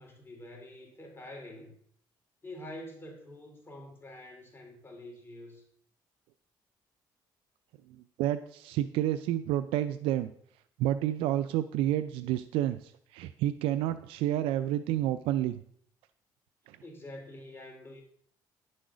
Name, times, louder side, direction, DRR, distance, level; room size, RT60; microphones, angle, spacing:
voice 1, 0.0-1.7 2.4-5.6 16.8-18.0, left 1 dB, 25° left, 2 dB, 3.2 m, -46 dB
voice 2, 7.9-10.3 10.8-15.5 16.7-16.8, right 13 dB, 90° right, 11 dB, 0.4 m, -30 dB
10.5 x 6.4 x 5.0 m, 0.63 s
cardioid pair, 85°, 9 cm